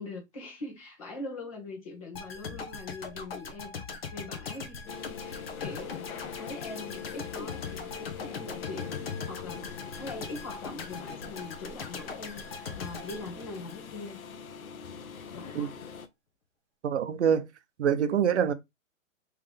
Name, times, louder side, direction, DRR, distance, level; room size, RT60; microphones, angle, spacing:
voice 1, 0.0-3.8 4.1-4.9 5.2-9.7 9.9-14.2 15.3-15.7, left 2 dB, 25° left, 1.6 m, -42 dB
sound 1, 2.1-14.2 14.5-14.6, left 5 dB, 45° left, 1.0 m, -40 dB
sound 2, 4.9-16.1, left 7 dB, 85° left, 0.9 m, -43 dB
voice 2, 16.8-17.5 17.8-18.5, right 8 dB, 55° right, 0.7 m, -25 dB
3.6 x 3.3 x 3.5 m
hypercardioid pair, 175°, 41 cm